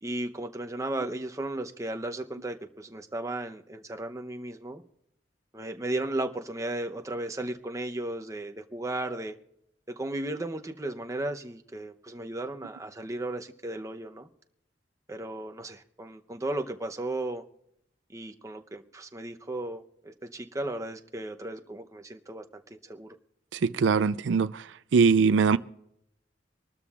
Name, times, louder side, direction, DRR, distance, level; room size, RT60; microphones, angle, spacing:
voice 1, 0.0-4.8 5.5-9.4 9.9-14.3 15.1-17.4 18.1-22.4 22.7-23.2, right 2 dB, 15° right, 0.7 m, -35 dB
voice 2, 23.5-24.6 24.9-25.6, right 5 dB, 85° right, 0.4 m, -22 dB
25.5 x 12.5 x 2.4 m
head